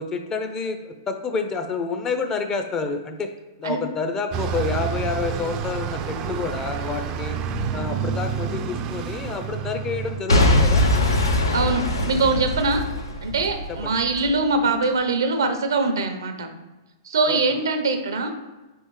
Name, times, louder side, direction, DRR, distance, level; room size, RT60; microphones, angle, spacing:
voice 1, 0.0-3.3 3.6-7.4 7.7-10.8 13.7-13.9 17.3-17.4, left 4 dB, 25° left, 6 dB, 0.5 m, -28 dB
Bus, 4.3-10.2, right 7 dB, 35° right, 0.3 m, -28 dB
Boom / Shatter / Crushing, 10.3-14.3 14.8-14.9, left 1 dB, 90° left, 0.7 m, -21 dB
voice 2, 11.5-12.8 13.2-16.5 17.1-18.3, right 3 dB, 80° right, 7 dB, 0.6 m, -23 dB
4.1 x 3.4 x 3.1 m, 1.1 s
hypercardioid pair, 120°, 2 cm